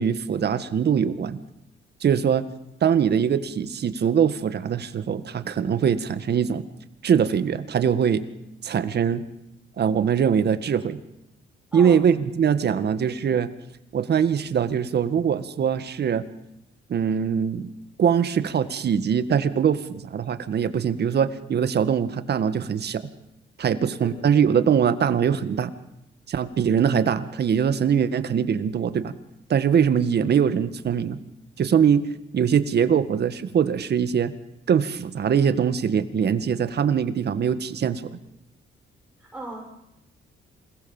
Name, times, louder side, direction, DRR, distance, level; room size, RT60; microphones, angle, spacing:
voice 1, 0.0-1.4 2.0-2.5 2.8-6.6 7.0-8.2 8.6-9.2 9.8-11.0 11.7-13.5 13.9-16.3 16.9-17.7 18.0-23.1 23.6-25.7 26.3-29.1 29.5-31.2 31.6-32.0 32.3-34.3 34.7-38.1, right 7 dB, 55° right, 11 dB, 1.8 m, -22 dB
voice 2, 11.7-12.2 12.7-12.9 23.7-24.2 39.2-39.7, right 2 dB, 5° right, -3 dB, 7.0 m, -38 dB
27.5 x 19.5 x 7.3 m, 0.88 s
cardioid pair, 90°, 20 cm